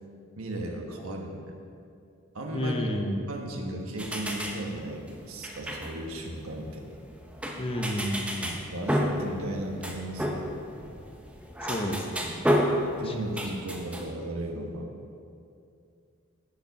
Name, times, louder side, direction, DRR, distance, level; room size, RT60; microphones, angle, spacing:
voice 1, 0.4-1.5 2.3-2.9 3.3-6.8 8.4-10.5 12.6-14.9, right 1 dB, 85° right, 2 dB, 1.2 m, -36 dB
voice 2, 2.5-3.2 7.6-8.5 11.6-12.4 13.1-13.2, equal, 25° left, 3 dB, 0.7 m, -31 dB
sound 1, 4.0-14.1, equal, 5° right, 0.6 m, -32 dB
11.0 x 7.1 x 4.1 m, 2.5 s
head